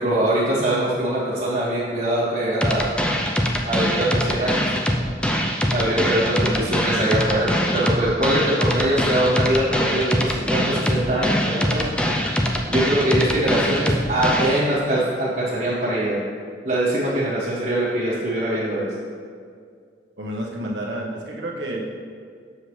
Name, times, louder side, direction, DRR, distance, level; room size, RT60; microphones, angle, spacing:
voice 1, 0.0-2.9 3.6-4.6 5.7-11.9 12.7-16.2 16.6-18.9, right 1 dB, 45° right, -11 dB, 1.4 m, -22 dB
sound 1, 2.6-14.6, equal, 5° left, 0.4 m, -22 dB
voice 2, 20.2-21.9, right 1 dB, 80° right, -2 dB, 1.2 m, -30 dB
7.2 x 6.8 x 3.2 m, 2.2 s
head